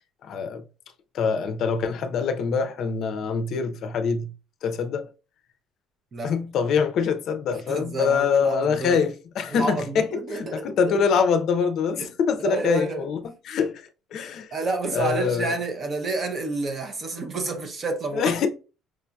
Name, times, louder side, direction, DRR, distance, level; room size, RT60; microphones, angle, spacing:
voice 1, 0.2-0.6 1.1-4.3 4.6-5.1 6.2-10.1 10.3-14.5 14.9-15.5 18.1-18.5, left 6 dB, 50° left, 0.5 m, -24 dB
voice 2, 7.7-9.0 9.5-10.8 12.0-12.1 12.4-13.1 14.5-18.4, right 3 dB, 30° right, 0.7 m, -29 dB
4.8 x 2.6 x 2.2 m
cardioid pair, 145°, 0 cm